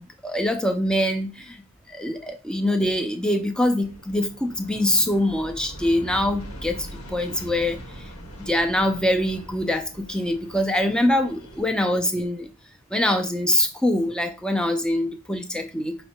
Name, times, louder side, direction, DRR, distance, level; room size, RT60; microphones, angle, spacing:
voice 1, 0.2-1.3 1.9-8.1 8.4-12.5 12.9-15.9, left 1 dB, 5° left, 5 dB, 0.3 m, -24 dB
Aircraft, 3.8-11.8, right 1 dB, 80° left, 1.0 m, -41 dB
5.2 x 2.1 x 2.9 m, 0.32 s
head